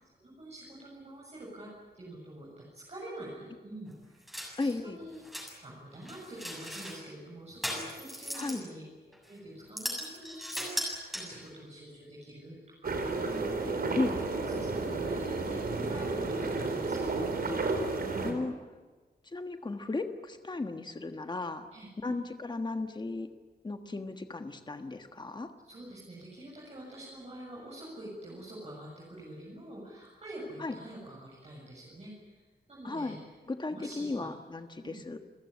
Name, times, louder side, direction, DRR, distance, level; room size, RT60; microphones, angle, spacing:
voice 1, 0.2-4.2 4.6-5.2 5.6-13.8 14.2-17.3 18.0-18.4 21.7-22.2 25.6-33.2 33.7-34.3 34.8-35.0, right 1 dB, 40° right, -5 dB, 7.3 m, -46 dB
sound 1, 4.3-4.7 5.1-5.5 6.0-7.0 7.6-8.6 9.1-9.3 9.8-11.5, equal, ahead, 7.3 m, -38 dB
voice 2, 4.6-5.0 8.3-8.6 13.9-14.2 18.2-18.5 19.3-21.7 22.0-23.3 23.6-25.5 30.6-30.8 32.8-33.2 33.5-35.2, left 3 dB, 25° left, 7 dB, 1.4 m, -35 dB
sound 2, 12.8-18.3, right 3 dB, 65° right, 4.0 m, -32 dB
30.0 x 15.5 x 9.9 m, 1.3 s
wide cardioid pair, 165°, 17 cm